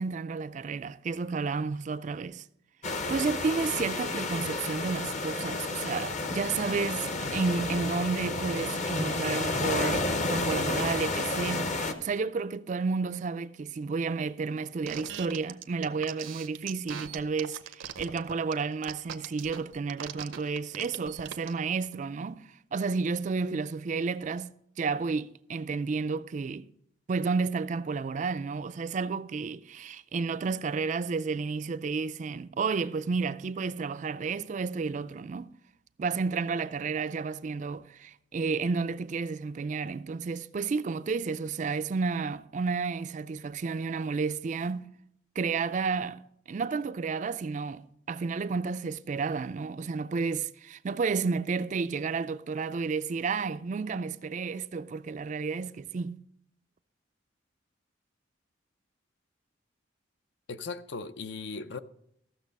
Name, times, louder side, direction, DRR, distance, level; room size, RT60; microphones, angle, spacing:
voice 1, 0.0-2.5 3.1-26.7 27.1-35.5 36.0-44.9 45.4-56.2, right 4 dB, 40° right, 0.3 m, -31 dB
sound 1, 2.8-11.9, left 2 dB, 40° left, 0.8 m, -31 dB
sound 2, 14.9-21.5, right 8 dB, 75° right, 0.6 m, -40 dB
voice 2, 60.5-61.8, left 4 dB, 60° left, 0.5 m, -38 dB
14.5 x 6.6 x 5.3 m
head